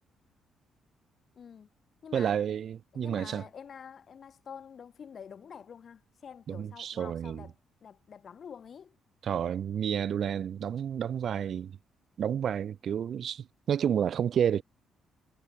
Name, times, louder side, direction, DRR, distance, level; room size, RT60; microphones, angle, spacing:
voice 1, 1.4-1.7 2.0-2.3 2.9-7.5 7.8-9.0, left 7 dB, 50° left, 6.0 m, -47 dB
voice 2, 2.1-3.4 6.5-7.4 9.2-11.8 12.2-14.6, right 8 dB, 60° right, 0.4 m, -30 dB
cardioid pair, 90°, 0 cm